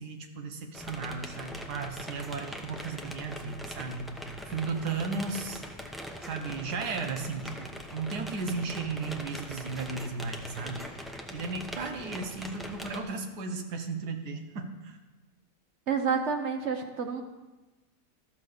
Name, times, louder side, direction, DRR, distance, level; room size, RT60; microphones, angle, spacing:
voice 1, 0.0-4.1 4.4-5.6 6.2-15.0, right 4 dB, 85° right, 6 dB, 1.6 m, -35 dB
sound 1, 0.7-13.0, equal, ahead, 0.3 m, -42 dB
voice 2, 15.9-17.2, right 6 dB, 50° right, 5 dB, 1.0 m, -29 dB
13.0 x 5.7 x 6.6 m, 1.1 s
omnidirectional pair, 1.7 m